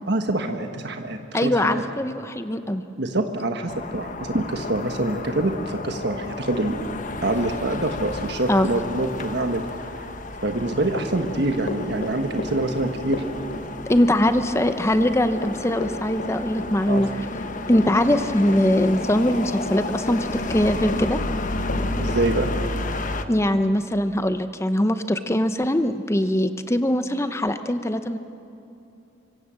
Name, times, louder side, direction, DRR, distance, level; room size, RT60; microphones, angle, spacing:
voice 1, 0.1-1.8 3.0-6.7 7.2-9.6 9.9-10.1 10.4-13.2 16.9-17.1 22.0-22.5, right 2 dB, 60° right, 5 dB, 1.4 m, -25 dB
voice 2, 1.3-2.8 8.5-8.7 13.9-17.1 17.7-21.2 23.3-28.2, left 1 dB, 15° left, 9 dB, 0.7 m, -22 dB
sound 1, 3.7-23.3, left 2 dB, 40° left, 1.2 m, -32 dB
Run / Walk footsteps, 10.9-22.6, left 1 dB, 60° left, 3.3 m, -33 dB
26.0 x 24.5 x 7.7 m, 2.8 s
head